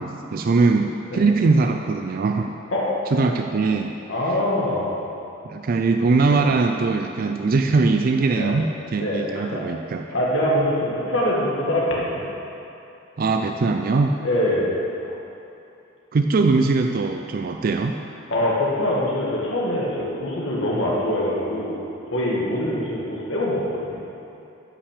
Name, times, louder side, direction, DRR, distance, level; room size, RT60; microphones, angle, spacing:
voice 1, 0.0-2.5 3.1-3.9 5.4-10.1 13.2-14.2 16.1-17.9, right 3 dB, 45° right, 5 dB, 0.4 m, -21 dB
voice 2, 4.1-5.0 6.3-6.4 8.3-8.5 9.0-9.7 10.1-12.2 14.2-14.8 18.3-21.8 22.1-24.0, left 1 dB, 75° left, -5 dB, 1.8 m, -24 dB
9.3 x 6.0 x 6.6 m, 2.8 s
head